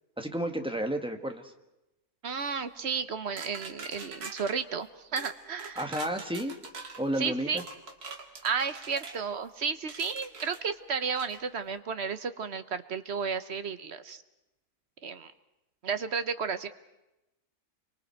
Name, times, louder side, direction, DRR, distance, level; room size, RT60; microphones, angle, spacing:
voice 1, 0.2-1.4 5.7-6.5 7.0-7.6, right 1 dB, 5° right, 4 dB, 1.4 m, -31 dB
voice 2, 2.2-6.0 7.2-7.6 8.4-14.2 15.0-15.3 15.8-16.7, right 6 dB, 50° right, 11 dB, 1.1 m, -33 dB
sound 1, 3.4-4.5 5.2-5.3 5.6-7.0 7.6-9.2 9.9-10.6 11.2-11.4, right 4 dB, 85° right, 2.5 m, -43 dB
30.0 x 24.0 x 4.6 m, 0.94 s
omnidirectional pair, 1.6 m